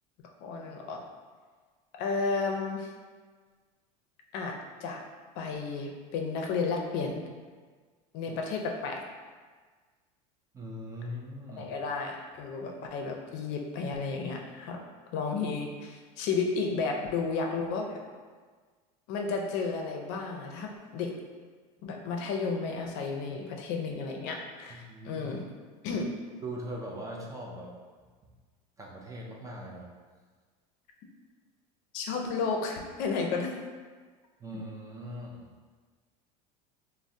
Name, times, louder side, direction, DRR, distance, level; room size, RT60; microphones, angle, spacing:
voice 1, 0.4-1.0 2.0-2.9 4.3-5.0 5.4-7.2 8.1-9.0 11.6-14.8 15.1-18.0 19.1-21.1 21.8-25.4 25.8-26.1 31.9-33.5, left 4 dB, 55° left, 2 dB, 0.5 m, -32 dB
voice 2, 10.5-11.7 24.9-25.2 26.4-27.7 28.8-29.9 34.4-35.5, equal, 15° right, -2 dB, 0.4 m, -40 dB
3.2 x 2.1 x 2.6 m, 1.5 s
supercardioid pair, 115°, 20 cm